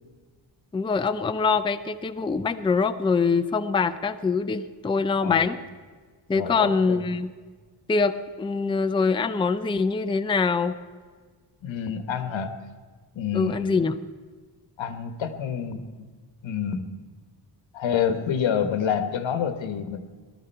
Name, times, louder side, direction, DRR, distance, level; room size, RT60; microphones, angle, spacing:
voice 1, 0.7-5.6 6.3-7.3 7.9-10.8 13.3-13.9, left 4 dB, 10° left, 10 dB, 0.4 m, -24 dB
voice 2, 6.3-7.0 11.6-12.5 13.1-13.7 14.8-15.9 16.4-17.0 17.7-20.0, left 7 dB, 90° left, 9 dB, 1.3 m, -28 dB
19.0 x 12.5 x 4.5 m, 1.5 s
wide cardioid pair, 135°, 45 cm